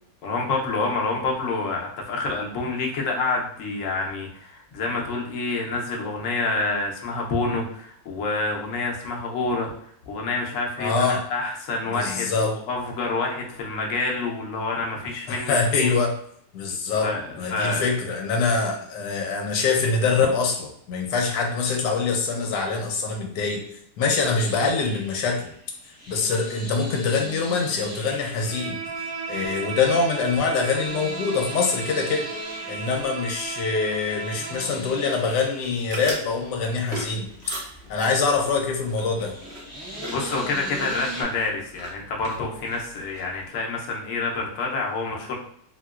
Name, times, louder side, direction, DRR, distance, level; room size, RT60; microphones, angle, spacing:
voice 1, 0.2-9.7 10.1-16.0 17.0-17.9 40.1-45.3, left 3 dB, 65° left, 0 dB, 0.9 m, -28 dB
voice 2, 10.8-11.2 11.9-12.5 15.3-16.1 16.5-17.1 17.4-23.6 24.0-25.5 25.8-32.3 32.7-37.3 37.9-39.3, left 4 dB, 90° left, 2 dB, 1.2 m, -24 dB
sound 1, 24.2-41.2, right 1 dB, 20° left, 0.7 m, -41 dB
Bowed string instrument, 28.4-34.8, right 5 dB, 75° right, 1.1 m, -35 dB
sound 2, 35.6-43.5, right 1 dB, 45° right, 1.0 m, -40 dB
2.9 x 2.9 x 2.3 m, 0.66 s
omnidirectional pair, 1.8 m